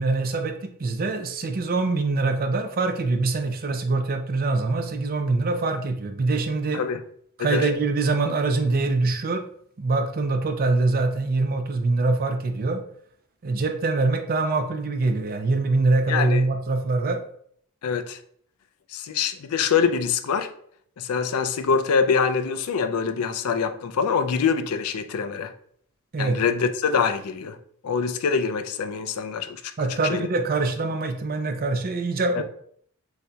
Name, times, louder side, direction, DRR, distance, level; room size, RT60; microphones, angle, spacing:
voice 1, 0.0-6.8 7.4-9.4 9.8-12.8 13.4-17.2 26.1-26.4 29.8-32.4, right 3 dB, 45° right, 0.5 m, -24 dB
voice 2, 16.1-16.5 17.8-18.2 18.9-20.5 21.0-25.5 26.2-27.6 27.8-29.6 29.9-30.3 32.3-32.4, left 6 dB, 90° left, 0.4 m, -24 dB
6.3 x 2.8 x 2.2 m
head